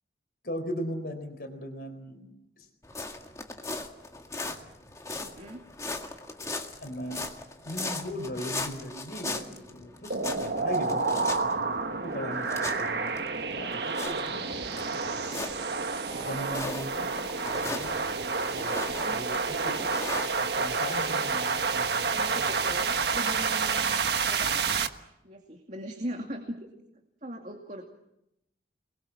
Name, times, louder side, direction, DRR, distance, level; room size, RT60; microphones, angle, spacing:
voice 1, 0.4-2.2 2.6-2.7 6.8-7.2 7.6-13.2 13.5-15.0 16.1-18.1 18.5-19.8 20.4-22.5, equal, 60° left, 6 dB, 4.2 m, -39 dB
sound 1, 2.8-21.0, left 3 dB, 20° left, 2.0 m, -39 dB
voice 2, 5.2-5.6 12.4-13.0 16.0-16.7 19.0-19.5 22.1-23.9 24.2-24.7 25.2-26.6 27.2-27.8, equal, 45° right, 3 dB, 2.5 m, -40 dB
sound 2, 10.1-24.9, right 4 dB, 70° right, 1.3 m, -29 dB
28.5 x 21.5 x 7.4 m, 0.84 s
head